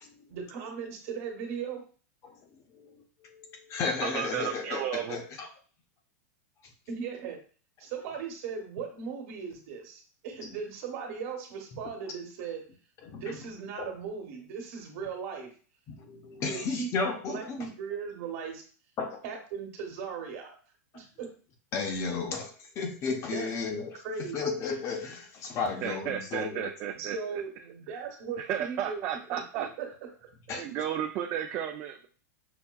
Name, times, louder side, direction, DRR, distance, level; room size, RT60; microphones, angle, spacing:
voice 1, 0.3-1.8 6.9-7.4 7.8-12.6 13.1-15.5 16.4-18.6 19.2-20.5 20.9-21.3 23.3-23.5 24.0-24.4 27.0-29.0 29.5-29.9, right 6 dB, 55° right, 3 dB, 1.1 m, -38 dB
voice 2, 3.2-4.8 5.1-5.5 13.0-13.4 15.9-17.7 19.0-19.2 21.7-26.7 30.5-30.6, left 4 dB, 35° left, 4 dB, 0.7 m, -34 dB
voice 3, 4.0-5.2 25.8-27.4 27.9-28.0 28.4-29.7 30.5-32.1, right 10 dB, 35° right, 4 dB, 0.3 m, -33 dB
5.8 x 2.2 x 2.2 m, 0.40 s
supercardioid pair, 135°, 9 cm